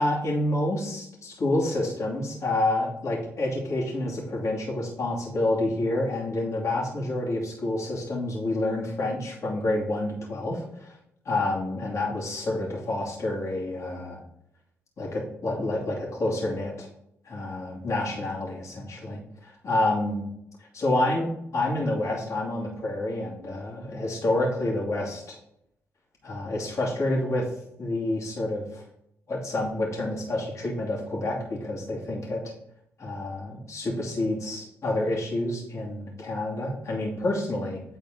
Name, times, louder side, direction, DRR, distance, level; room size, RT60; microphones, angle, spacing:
voice 1, 0.0-11.0 11.2-14.2 15.0-16.9 17.2-20.3 20.6-25.4 26.2-27.5 27.8-28.8 29.3-32.4 33.0-37.8, left 1 dB, 55° left, -3 dB, 2.6 m, -28 dB
9.3 x 4.1 x 4.0 m, 0.77 s
hypercardioid pair, 45°, 6 cm